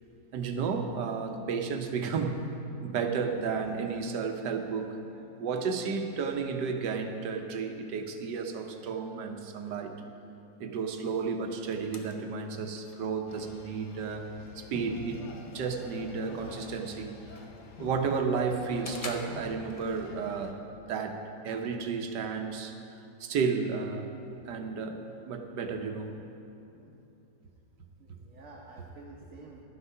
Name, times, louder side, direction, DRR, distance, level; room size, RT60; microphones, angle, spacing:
voice 1, 0.3-2.4 2.8-5.0 5.4-9.9 10.6-14.3 14.5-15.2 15.5-17.2 17.8-20.5 20.9-21.2 21.4-22.7 23.2-24.1 24.5-26.1, right 5 dB, 90° right, 5 dB, 1.5 m, -32 dB
voice 2, 5.0-5.4 26.1-26.3 26.7-27.0 28.0-29.6, right 3 dB, 55° right, -3 dB, 1.3 m, -51 dB
sound 1, 11.1-20.1, left 3 dB, 50° left, 0.4 m, -50 dB
sound 2, 13.3-20.5, left 3 dB, 80° left, 1.5 m, -47 dB
11.5 x 8.0 x 5.5 m, 2.9 s
omnidirectional pair, 1.8 m